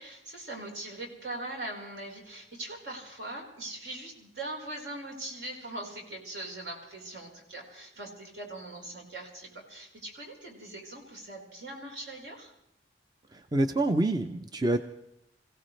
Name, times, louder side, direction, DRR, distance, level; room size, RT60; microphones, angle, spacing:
voice 1, 0.0-12.5, right 2 dB, 70° right, 0 dB, 4.3 m, -41 dB
voice 2, 13.5-14.8, right 2 dB, 20° right, 8 dB, 0.5 m, -26 dB
26.0 x 16.5 x 3.2 m, 0.84 s
head